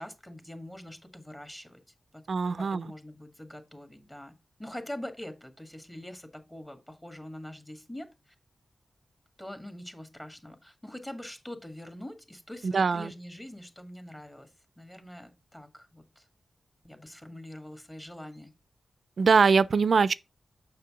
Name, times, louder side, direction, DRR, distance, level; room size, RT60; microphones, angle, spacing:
voice 1, 0.0-1.8 2.1-2.3 2.6-8.3 9.4-14.5 14.8-16.3 16.8-18.5, left 1 dB, 15° left, 1.8 m, -44 dB
voice 2, 2.3-2.9 12.6-13.1 19.2-20.1, right 5 dB, 70° right, 0.4 m, -23 dB
6.7 x 5.7 x 3.7 m
cardioid pair, 55°, 0 cm